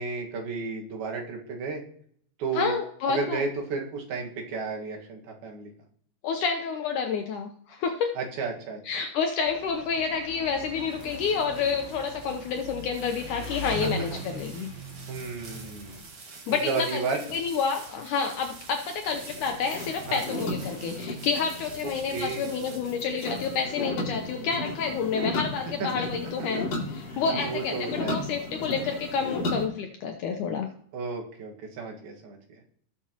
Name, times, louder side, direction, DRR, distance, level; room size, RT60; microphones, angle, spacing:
voice 1, 0.0-1.8 2.4-2.8 3.1-5.7 8.2-8.8 14.1-14.2 15.1-16.0 16.5-17.2 20.1-20.2 22.1-22.5 25.8-25.9 27.1-27.2 27.4-28.2 30.9-32.4, right 4 dB, 75° right, 1 dB, 3.5 m, -32 dB
voice 2, 2.5-3.4 6.2-8.1 8.9-14.7 16.5-17.0 17.3-26.6 26.9-30.7, left 5 dB, 75° left, 4 dB, 1.9 m, -29 dB
Engine, 9.4-16.0, equal, 35° left, 5.6 m, -40 dB
sound 1, 10.5-24.1, right 4 dB, 50° right, 2.1 m, -47 dB
sound 2, 19.1-29.7, left 2 dB, 55° left, 3.5 m, -35 dB
18.5 x 7.0 x 2.9 m, 0.63 s
omnidirectional pair, 4.4 m